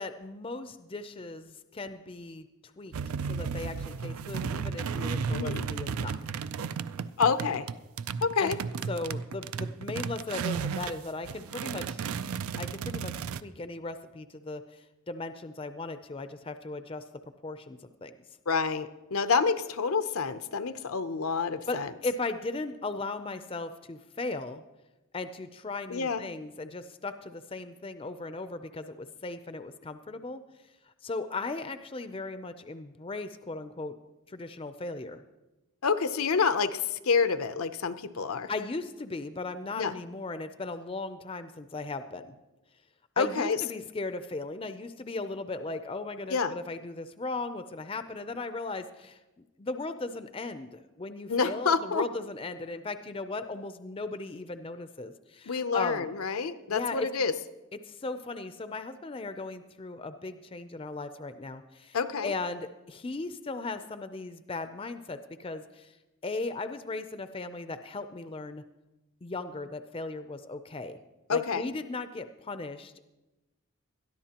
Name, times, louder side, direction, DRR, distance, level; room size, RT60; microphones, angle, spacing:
voice 1, 0.0-2.5 2.8-2.9 3.3-6.2 8.4-8.6 8.9-12.0 12.6-13.1 13.4-17.0 17.4-18.1 21.7-24.6 25.1-30.4 31.0-33.9 34.3-35.2 38.5-42.3 43.2-49.2 49.6-56.1 56.7-57.1 57.9-62.0 62.2-65.9 66.2-68.6 69.2-71.0 71.3-73.0, left 3 dB, 25° left, 10 dB, 0.4 m, -37 dB
sound 1, 2.9-11.0 11.2-13.4, right 6 dB, 85° right, 0.4 m, -34 dB
voice 2, 5.3-5.7 7.2-7.7 8.2-8.6 18.5-21.9 25.9-26.2 35.8-38.5 39.8-39.9 43.2-43.6 46.3-46.5 51.3-52.1 55.5-57.3 61.9-62.3 71.3-71.6, left 5 dB, 80° left, 11 dB, 0.6 m, -28 dB
21.0 x 13.0 x 2.9 m, 1.1 s
head